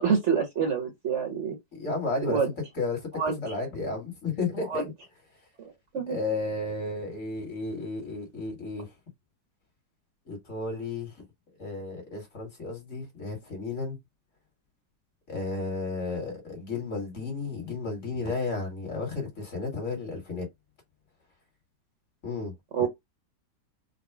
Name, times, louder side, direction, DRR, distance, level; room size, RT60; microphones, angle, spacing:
voice 1, 0.0-1.6 2.3-2.5 3.1-3.4 4.7-4.8 5.6-6.2 22.7-22.9, right 6 dB, 45° right, 1.4 m, -27 dB
voice 2, 1.7-2.4 2.8-3.1 3.4-4.9 6.1-8.9 10.3-11.1 11.6-14.0 15.3-20.5 22.2-22.5 22.8-22.9, left 3 dB, 45° left, 1.9 m, -33 dB
4.1 x 2.2 x 4.5 m
omnidirectional pair, 1.8 m